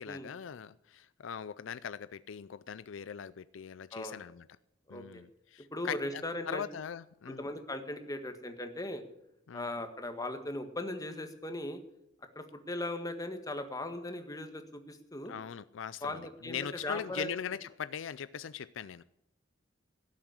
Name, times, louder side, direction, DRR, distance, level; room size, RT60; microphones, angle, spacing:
voice 1, 0.0-4.5 4.9-7.4 9.5-9.7 15.3-19.0, left 7 dB, 75° left, 0.4 m, -41 dB
voice 2, 3.9-4.3 4.9-5.2 5.7-6.6 7.3-9.0 9.5-11.8 12.3-15.3 16.0-17.3, left 1 dB, 20° left, 1.7 m, -38 dB
17.0 x 7.3 x 9.7 m
head